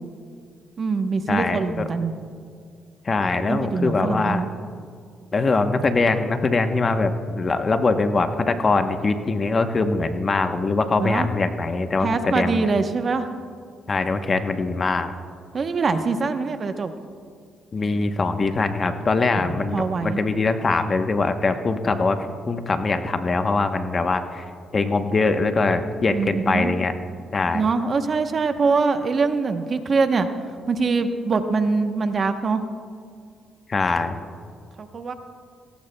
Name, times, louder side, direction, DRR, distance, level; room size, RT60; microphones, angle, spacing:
voice 1, 0.8-2.1 3.5-4.5 11.0-11.3 12.0-13.3 15.5-16.9 19.4-20.2 26.1-26.7 27.5-30.3 30.7-32.6 34.8-35.1, right 4 dB, 45° right, 7 dB, 0.9 m, -23 dB
voice 2, 1.3-1.8 3.0-4.4 5.3-12.7 13.9-15.1 17.7-22.2 22.5-24.4 24.7-26.9 27.3-27.6 33.7-34.2, left 3 dB, 35° left, 8 dB, 0.9 m, -22 dB
18.0 x 17.5 x 2.2 m, 2.2 s
cardioid pair, 90°, 0 cm